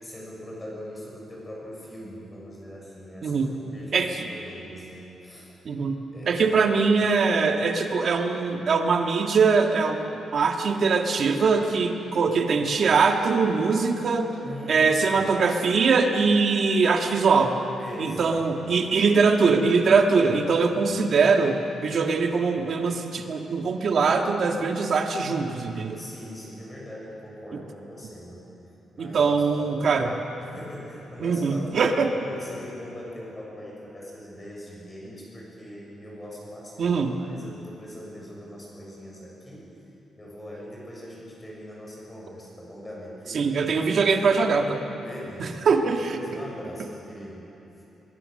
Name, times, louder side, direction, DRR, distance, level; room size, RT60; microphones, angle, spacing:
voice 1, 0.0-5.5 6.1-6.7 14.4-15.2 17.8-19.0 20.6-21.0 25.9-28.5 28.9-29.2 29.6-30.1 30.4-39.7 40.2-44.2 45.0-47.4 47.8-47.9, equal, 15° left, -4 dB, 6.6 m, -41 dB
voice 2, 3.9-4.2 5.7-6.0 6.3-10.1 10.3-14.3 14.7-17.5 18.0-26.0 29.0-30.1 31.2-32.1 36.8-37.2 43.3-44.8 45.4-46.2, right 4 dB, 45° right, 3 dB, 1.8 m, -22 dB
24.5 x 21.5 x 6.7 m, 3.0 s
wide cardioid pair, 170°, 0 cm